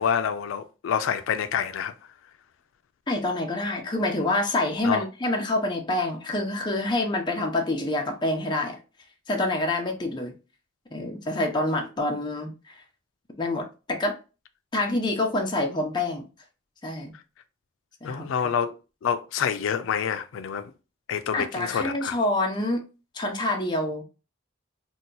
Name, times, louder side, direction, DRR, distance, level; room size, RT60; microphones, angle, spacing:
voice 1, 0.0-1.9 4.8-5.0 18.0-18.7 19.0-20.7 21.1-22.1, left 7 dB, 80° left, 0.3 m, -27 dB
voice 2, 3.1-8.8 9.3-10.4 10.9-12.8 13.4-14.2 14.7-16.2 16.8-17.1 18.0-18.2 21.3-22.8 23.1-24.0, left 2 dB, 20° left, 0.5 m, -27 dB
2.8 x 2.2 x 3.8 m
head